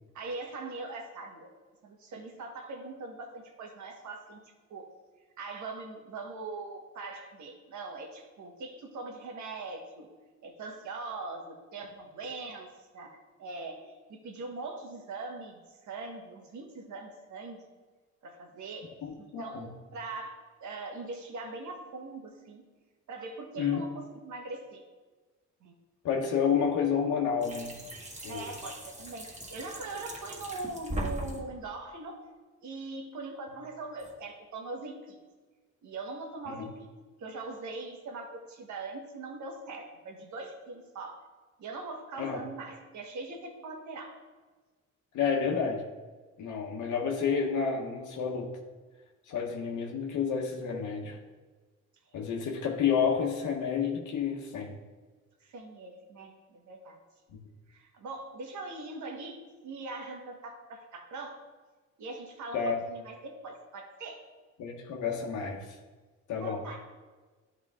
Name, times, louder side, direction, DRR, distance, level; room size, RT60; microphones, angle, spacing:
voice 1, 0.1-1.5 1.8-4.4 4.7-4.9 5.4-10.1 10.4-17.6 18.2-18.9 19.2-22.6 23.1-24.8 25.6-25.8 28.3-32.2 32.6-35.2 35.8-36.9 37.2-41.2 41.6-44.2 52.3-52.4 55.4-57.0 57.7-61.4 62.0-64.2 66.4-66.8, right 3 dB, 70° right, 3 dB, 1.3 m, -41 dB
voice 2, 19.0-19.7 23.6-23.8 26.0-27.8 28.2-28.5 36.5-36.7 42.2-42.4 45.1-45.8 46.4-48.5 49.3-51.2 52.1-54.8 57.3-57.4 62.5-62.8 64.6-65.8 66.3-66.6, left 6 dB, 80° left, 0 dB, 1.0 m, -30 dB
sound 1, 27.4-31.4 34.0-34.1, right 1 dB, 25° right, 1.7 m, -40 dB
11.0 x 3.7 x 3.6 m, 1.3 s
cardioid pair, 90°, 30 cm